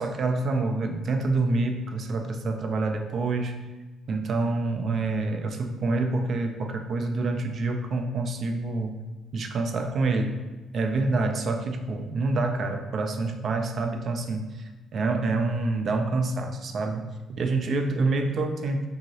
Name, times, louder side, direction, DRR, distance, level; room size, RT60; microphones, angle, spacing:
voice 1, 0.0-3.5 4.1-9.0 9.3-10.4 10.7-14.6 14.9-18.9, right 3 dB, 55° right, 5 dB, 0.3 m, -27 dB
3.0 x 2.7 x 2.7 m, 1.2 s
cardioid pair, 80°, 0 cm